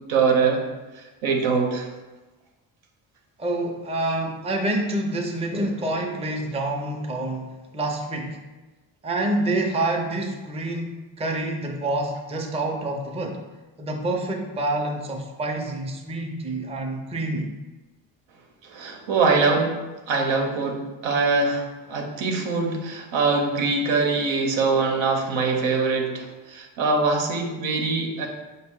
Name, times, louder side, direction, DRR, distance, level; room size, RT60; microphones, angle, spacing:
voice 1, 0.1-0.6 0.9-1.9 18.6-19.8 20.1-28.3, right 4 dB, 80° right, 2 dB, 0.9 m, -23 dB
voice 2, 3.4-8.4 9.0-13.4 13.8-17.5, right 2 dB, 15° right, 1 dB, 0.5 m, -27 dB
5.5 x 2.2 x 3.5 m, 1.2 s
cardioid pair, 80°, 45 cm